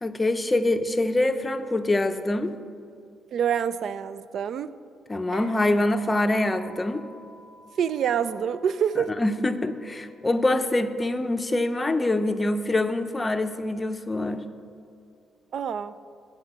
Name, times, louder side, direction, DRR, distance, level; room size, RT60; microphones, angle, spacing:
voice 1, 0.0-2.5 5.1-7.0 9.0-14.5, left 2 dB, 20° left, 9 dB, 0.6 m, -25 dB
voice 2, 3.3-4.7 7.8-9.1 15.5-15.9, right 8 dB, 65° right, 15 dB, 0.3 m, -26 dB
sound 1, 5.3-12.1, right 1 dB, 50° right, 1.5 m, -49 dB
7.8 x 5.6 x 7.6 m, 2.4 s
cardioid pair, 90°, 0 cm